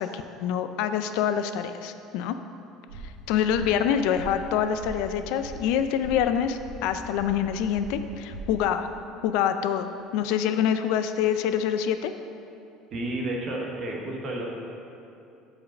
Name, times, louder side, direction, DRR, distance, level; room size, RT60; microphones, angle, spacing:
voice 1, 0.0-2.4 3.3-8.9 9.2-12.1, left 8 dB, 65° left, 9 dB, 0.3 m, -26 dB
sound 1, 2.9-8.5, right 2 dB, 90° right, 1.7 m, -42 dB
voice 2, 12.9-14.5, right 1 dB, 35° right, -1 dB, 0.9 m, -31 dB
5.2 x 4.8 x 6.3 m, 2.7 s
cardioid pair, 175°, 0 cm